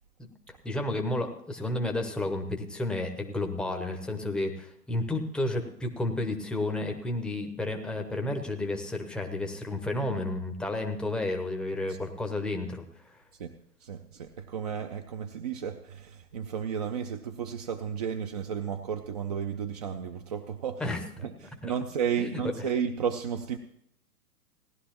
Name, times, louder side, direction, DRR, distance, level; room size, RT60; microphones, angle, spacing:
voice 1, 0.2-13.2 20.8-21.0 21.4-21.7 22.2-22.3, left 2 dB, ahead, 3 dB, 0.7 m, -32 dB
voice 2, 13.8-20.9 21.2-23.6, right 7 dB, 25° right, 6 dB, 0.5 m, -33 dB
18.0 x 11.5 x 3.0 m, 0.72 s
figure-of-eight pair, 120°, 47 cm